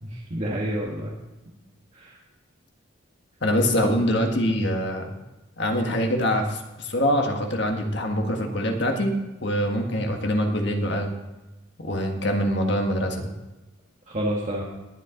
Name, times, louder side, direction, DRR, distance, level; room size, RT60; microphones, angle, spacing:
voice 1, 0.0-1.1 1.9-2.2 14.1-14.6, right 1 dB, 35° right, -4 dB, 1.7 m, -29 dB
voice 2, 3.4-5.1 5.6-9.1 9.4-11.1 11.8-13.3, equal, 55° left, 3 dB, 1.7 m, -24 dB
20.5 x 7.6 x 3.9 m, 1.1 s
head